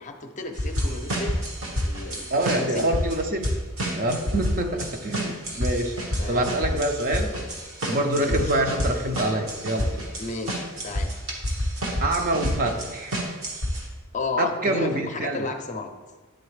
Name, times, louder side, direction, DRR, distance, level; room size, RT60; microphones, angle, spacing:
voice 1, 0.0-1.4 1.8-2.9 4.8-4.9 6.2-6.5 8.2-8.5 10.2-11.1 14.1-15.9, left 3 dB, 35° left, 5 dB, 0.6 m, -33 dB
sound 1, 0.6-13.8, equal, 75° right, 1.4 m, -29 dB
voice 2, 2.3-3.5 3.9-5.9 6.3-7.4 7.9-10.0 12.0-13.2 14.4-15.5, right 1 dB, 40° right, 4 dB, 0.6 m, -26 dB
10.5 x 3.9 x 3.2 m, 1.2 s
head